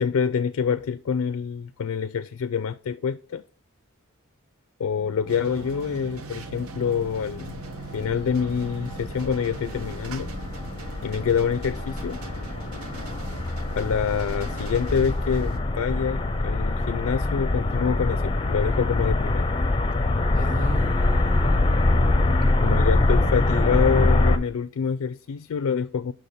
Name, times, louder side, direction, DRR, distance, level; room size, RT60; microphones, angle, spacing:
voice 1, 0.0-3.4 4.8-7.6 7.9-10.3 11.0-12.2 13.7-19.5 22.6-26.1, left 6 dB, 80° left, 0.3 m, -26 dB
sound 1, 4.9-20.9, left 1 dB, 15° right, 1.6 m, -46 dB
sound 2, 5.3-15.6, right 3 dB, 90° right, 0.8 m, -40 dB
sound 3, 7.0-24.4, left 2 dB, 25° left, 0.5 m, -24 dB
voice 2, 20.3-23.4, right 2 dB, 40° right, 0.4 m, -37 dB
6.5 x 6.1 x 4.1 m
head